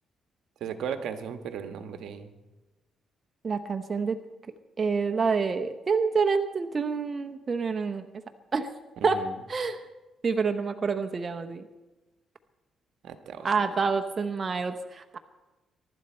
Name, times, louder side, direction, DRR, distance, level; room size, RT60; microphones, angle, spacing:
voice 1, 0.6-2.3 9.0-9.4 13.0-13.5, right 7 dB, 75° right, 7 dB, 1.2 m, -36 dB
voice 2, 3.4-4.2 4.8-8.1 8.5-8.7 9.0-9.2 9.5-9.8 10.2-11.7 13.4-15.2, right 5 dB, 35° right, 7 dB, 0.9 m, -27 dB
23.0 x 11.5 x 4.4 m, 1.1 s
cardioid pair, 90°, 0 cm